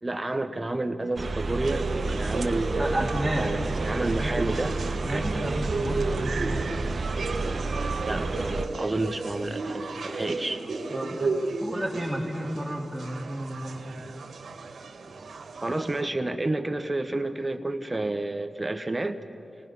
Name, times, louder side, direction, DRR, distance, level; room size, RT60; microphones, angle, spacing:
voice 1, 0.0-4.7 5.1-5.2 8.1-10.6 15.6-19.2, right 2 dB, 25° right, 7 dB, 1.3 m, -30 dB
sound 1, 1.2-8.7, right 3 dB, 50° right, 1.1 m, -30 dB
sound 2, 1.6-16.0, right 3 dB, 80° right, 1.7 m, -34 dB
voice 2, 2.8-4.3 5.0-6.6 10.9-14.1, right 1 dB, 5° right, -4 dB, 2.8 m, -32 dB
29.5 x 20.5 x 5.6 m, 2.5 s
cardioid pair, 55°, 0 cm